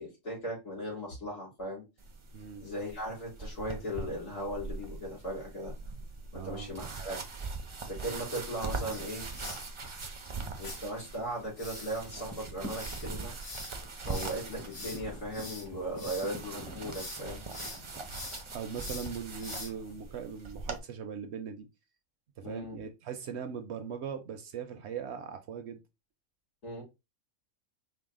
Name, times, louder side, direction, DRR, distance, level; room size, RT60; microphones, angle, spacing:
voice 1, 0.0-1.8 2.6-5.7 6.3-7.2 7.9-9.3 10.6-13.3 14.0-17.4 18.1-18.2 22.4-22.8 26.6-26.8, equal, 80° left, 2.9 m, -38 dB
sound 1, 2.0-20.8, right 4 dB, 50° right, 0.3 m, -42 dB
voice 2, 2.3-2.6 6.3-6.7 18.5-21.7 22.4-25.8, right 7 dB, 65° right, 0.8 m, -40 dB
sound 2, 8.9-9.7 10.6-10.8 11.6-16.4 16.7-17.2 17.5-19.9, left 2 dB, 65° left, 1.7 m, -44 dB
sound 3, 9.2-11.4 11.7-19.0, right 1 dB, 15° left, 0.5 m, -49 dB
4.7 x 2.1 x 3.6 m
omnidirectional pair, 1.4 m